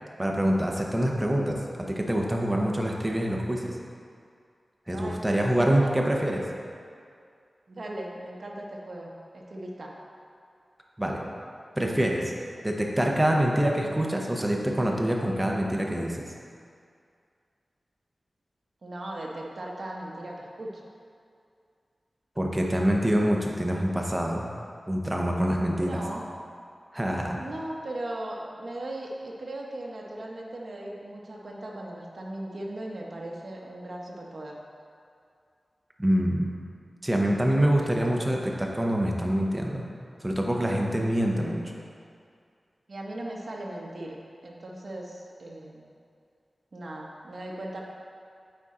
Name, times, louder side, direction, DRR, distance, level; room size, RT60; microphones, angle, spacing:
voice 1, 0.2-1.6 1.9-3.7 4.9-6.4 11.0-11.2 11.8-12.3 12.6-16.2 22.4-24.4 24.9-26.0 26.9-27.4 36.0-36.5 37.0-39.8 40.2-41.6, equal, 10° right, -1 dB, 0.8 m, -25 dB
voice 2, 4.9-5.9 7.7-9.9 18.8-20.9 25.8-26.2 27.3-34.6 37.7-38.3 42.9-44.2 44.4-45.9 46.7-47.8, right 1 dB, 55° right, -2 dB, 1.0 m, -38 dB
8.8 x 4.1 x 3.7 m, 2.3 s
wide cardioid pair, 105°, 0 cm